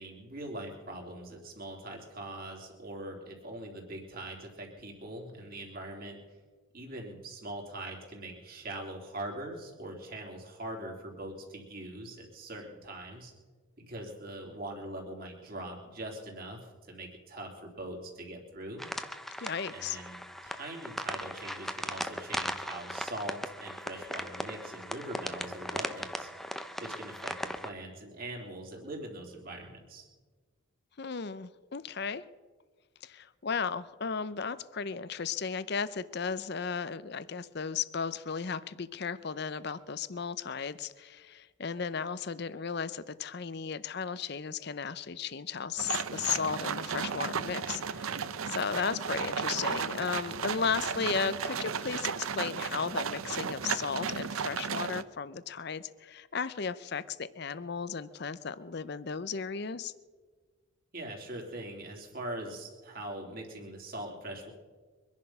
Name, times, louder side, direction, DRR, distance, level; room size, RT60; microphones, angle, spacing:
voice 1, 0.0-6.2 6.7-13.3 13.8-18.9 19.7-20.2 20.4-26.3 26.8-30.1 60.9-64.5, right 1 dB, 45° right, 0 dB, 3.2 m, -42 dB
sound 1, 18.8-27.7, equal, ahead, 0.6 m, -38 dB
voice 2, 19.4-20.0 31.0-32.2 33.0-59.9, left 6 dB, 50° left, 16 dB, 0.6 m, -35 dB
sound 2, 45.8-55.0, right 6 dB, 80° right, 0.7 m, -34 dB
24.0 x 10.5 x 5.7 m, 1.4 s
head